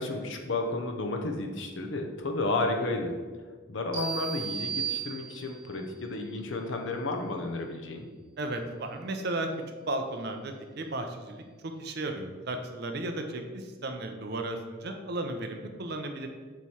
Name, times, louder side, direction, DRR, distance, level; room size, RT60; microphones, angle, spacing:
voice 1, 0.0-3.2 3.7-8.1, left 2 dB, 60° left, 4 dB, 0.7 m, -32 dB
sound 1, 3.9-5.7, right 7 dB, 80° right, 1.5 m, -34 dB
voice 2, 8.4-9.5 9.9-16.3, right 2 dB, 50° right, 5 dB, 0.6 m, -35 dB
7.2 x 3.1 x 4.3 m, 1.4 s
head